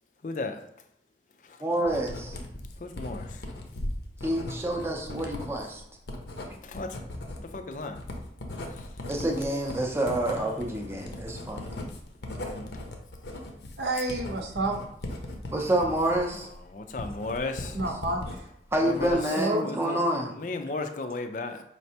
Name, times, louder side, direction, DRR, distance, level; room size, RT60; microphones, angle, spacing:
voice 1, 0.2-0.6 1.4-1.6 2.8-3.4 6.6-7.0 7.4-8.0 8.8-8.9 10.3-10.5 12.2-12.8 16.7-17.8 18.8-19.2 19.6-20.0 20.3-21.6, left 3 dB, 45° left, 6 dB, 0.4 m, -35 dB
voice 2, 1.6-2.4 4.2-5.8 9.1-11.7 15.5-16.5 18.7-20.3, right 1 dB, 15° right, 0 dB, 0.5 m, -28 dB
Writing, 1.9-18.4 18.7-19.4, left 1 dB, 75° left, 0.7 m, -38 dB
voice 3, 13.8-14.8 17.7-18.5 19.1-19.7, right 2 dB, 70° right, 3 dB, 0.8 m, -29 dB
5.0 x 3.2 x 2.8 m, 0.75 s
head